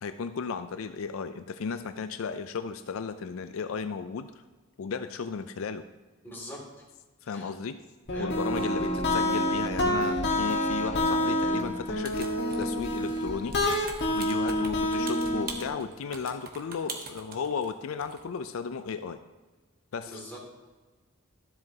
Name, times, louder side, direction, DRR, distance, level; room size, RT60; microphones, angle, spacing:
voice 1, 0.0-4.3 4.8-5.8 7.2-7.8 8.2-13.9 14.1-19.2 19.9-20.2, left 5 dB, 70° left, 10 dB, 0.4 m, -35 dB
voice 2, 6.2-6.8 7.3-7.5 8.1-8.5 20.1-20.5, left 1 dB, 10° left, -4 dB, 2.5 m, -43 dB
sound 1, 8.1-15.7, left 1 dB, 55° left, 1.5 m, -28 dB
sound 2, 12.0-12.8 13.1-17.7 18.0-18.2, right 5 dB, 45° right, 1.1 m, -41 dB
12.5 x 7.7 x 2.8 m, 1.3 s
head